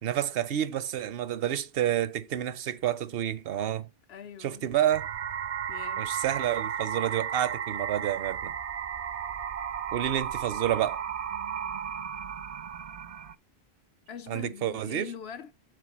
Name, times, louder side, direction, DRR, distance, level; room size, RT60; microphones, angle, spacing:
voice 1, 0.0-3.9 4.4-5.1 6.0-8.5 9.9-11.0 14.3-15.1, right 11 dB, 70° right, 0.8 m, -29 dB
voice 2, 4.1-4.7 5.7-6.0 14.1-15.5, left 8 dB, 75° left, 1.1 m, -42 dB
sound 1, 4.9-13.3, right 8 dB, 45° right, 0.5 m, -34 dB
8.1 x 3.7 x 6.0 m
omnidirectional pair, 1.1 m